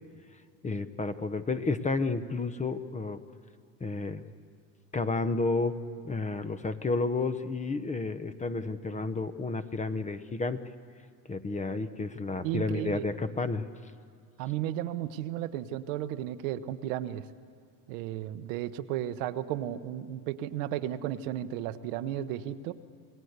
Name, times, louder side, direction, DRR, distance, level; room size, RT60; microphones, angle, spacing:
voice 1, 0.6-3.2 3.8-4.2 4.9-5.8 6.0-10.6 11.3-13.7, left 3 dB, 15° left, 11 dB, 0.9 m, -31 dB
voice 2, 12.4-13.1 14.4-17.2 17.9-22.7, right 12 dB, 75° right, 10 dB, 1.0 m, -34 dB
28.0 x 17.5 x 8.1 m, 2.1 s
supercardioid pair, 100°, 41 cm